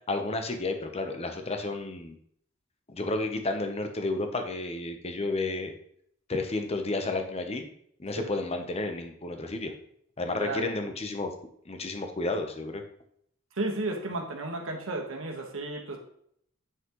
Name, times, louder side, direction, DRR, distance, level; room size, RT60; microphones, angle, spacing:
voice 1, 0.1-2.2 2.9-5.7 6.3-7.7 8.0-9.7 10.2-11.3 11.7-12.8, left 2 dB, 30° left, 6 dB, 0.9 m, -31 dB
voice 2, 10.3-10.7 13.6-16.0, right 2 dB, 90° right, 2 dB, 1.5 m, -33 dB
8.4 x 5.8 x 3.1 m, 0.68 s
head